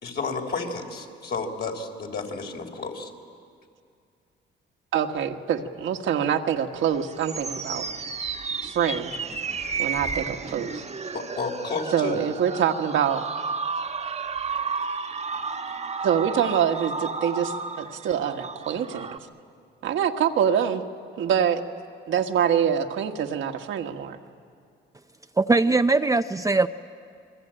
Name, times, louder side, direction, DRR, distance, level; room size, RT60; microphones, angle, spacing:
voice 1, 0.0-3.1 11.1-12.2, left 4 dB, 55° left, 3.9 m, -31 dB
voice 2, 4.9-7.9 8.6-9.1 9.8-10.8 11.9-13.2 16.0-19.1 19.8-20.8 21.2-21.6 22.1-24.2, right 8 dB, 75° right, 1.6 m, -25 dB
sound 1, 6.8-19.2, right 5 dB, 35° right, 1.3 m, -32 dB
voice 3, 25.4-26.7, right 3 dB, 15° right, 0.6 m, -20 dB
28.0 x 21.5 x 8.9 m
cardioid pair, 90°, 20 cm